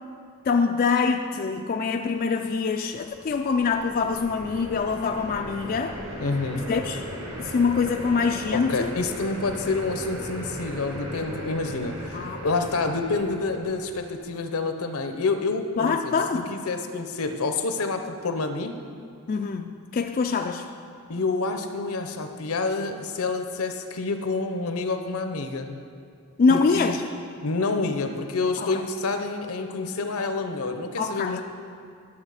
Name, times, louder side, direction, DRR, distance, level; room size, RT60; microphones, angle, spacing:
voice 1, 0.4-6.0 6.7-7.0 7.4-8.9 12.1-12.7 15.8-16.5 19.3-20.7 26.4-27.0 28.6-28.8 31.0-31.4, left 5 dB, 40° left, 4 dB, 0.3 m, -24 dB
sound 1, 2.9-14.3, equal, 85° right, 2.3 m, -37 dB
voice 2, 6.2-6.6 8.5-16.1 16.5-18.8 21.1-25.7 26.5-27.0 27.4-31.4, left 3 dB, 75° left, 7 dB, 0.7 m, -28 dB
11.5 x 7.2 x 4.9 m, 2.3 s
head